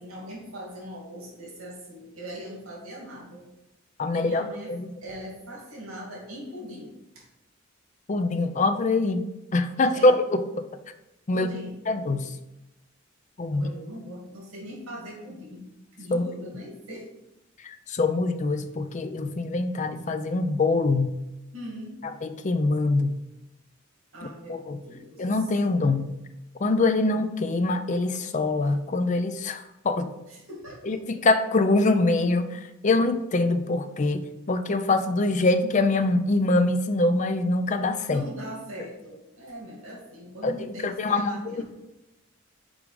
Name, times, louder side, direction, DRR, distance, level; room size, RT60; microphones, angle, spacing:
voice 1, 0.0-3.4 4.1-4.8 5.0-7.2 9.8-10.1 11.3-11.7 13.5-15.6 15.9-17.1 21.5-21.9 24.1-25.3 30.3-30.8 38.1-41.6, equal, 85° right, -3 dB, 2.3 m, -40 dB
voice 2, 4.0-4.9 8.1-9.3 9.5-10.7 11.3-11.5 11.9-12.3 13.4-13.7 16.1-16.2 17.6-21.2 22.0-23.2 24.5-24.8 25.2-26.1 26.6-30.1 30.8-38.3 40.4-41.6, left 2 dB, 35° left, 9 dB, 0.4 m, -24 dB
5.2 x 4.8 x 4.9 m, 0.93 s
head